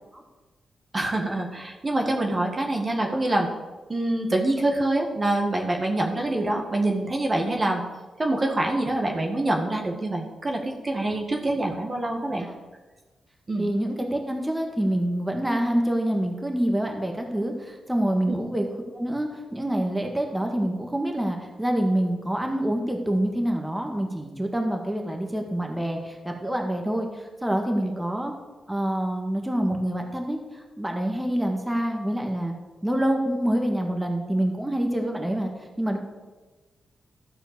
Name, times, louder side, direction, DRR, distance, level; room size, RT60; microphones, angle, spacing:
voice 1, 0.9-3.5 3.9-7.8 8.2-12.5 13.5-13.7 18.3-18.4, right 1 dB, 35° right, 1 dB, 1.7 m, -25 dB
voice 2, 13.6-18.7 18.9-28.3 28.7-32.5 32.8-35.5 35.8-36.0, right 1 dB, 15° right, 2 dB, 1.8 m, -26 dB
13.0 x 4.3 x 6.9 m, 1.2 s
hypercardioid pair, 40°, 0 cm